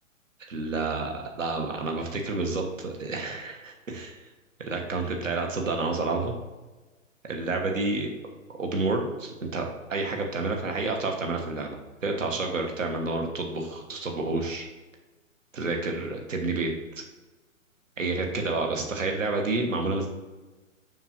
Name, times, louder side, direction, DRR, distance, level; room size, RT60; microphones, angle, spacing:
voice 1, 0.4-4.2 4.6-6.3 7.2-8.1 8.6-14.7 15.5-16.7 18.0-20.1, right 3 dB, 70° right, 2 dB, 1.3 m, -29 dB
7.2 x 6.0 x 2.9 m, 1.2 s
figure-of-eight pair, 125°, 41 cm